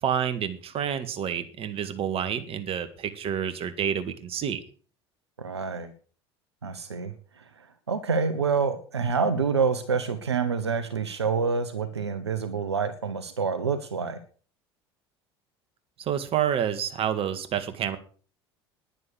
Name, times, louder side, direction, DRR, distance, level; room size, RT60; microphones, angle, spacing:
voice 1, 0.0-4.6 16.0-18.0, right 9 dB, 45° right, 10 dB, 2.0 m, -28 dB
voice 2, 5.4-5.9 6.6-14.2, right 5 dB, 85° right, 11 dB, 1.1 m, -27 dB
11.0 x 10.5 x 6.5 m, 0.40 s
figure-of-eight pair, 70°, 14 cm